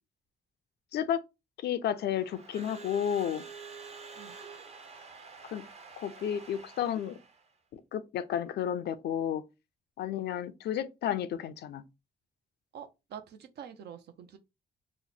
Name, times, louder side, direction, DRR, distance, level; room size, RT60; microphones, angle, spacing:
voice 1, 1.6-3.4 5.4-5.6 6.0-7.2 7.7-9.4 10.0-11.8, left 9 dB, 85° left, 0.5 m, -32 dB
Crowd / Alarm, 2.0-7.5, right 5 dB, 40° right, 0.6 m, -48 dB
voice 2, 12.7-14.4, right 8 dB, 85° right, 0.6 m, -46 dB
2.9 x 2.1 x 4.0 m
cardioid pair, 120°, 17 cm